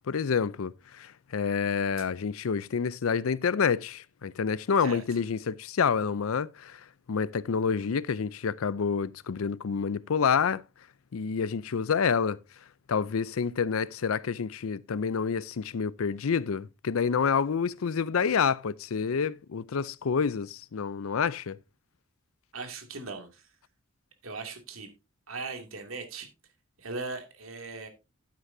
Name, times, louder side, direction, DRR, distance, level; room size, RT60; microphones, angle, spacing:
voice 1, 0.1-10.6 11.1-12.4 12.9-21.6, left 6 dB, 85° left, 0.5 m, -28 dB
voice 2, 22.5-23.5 24.2-24.9 25.3-26.3 26.8-27.9, right 3 dB, 85° right, 2.5 m, -38 dB
11.5 x 9.4 x 2.7 m
head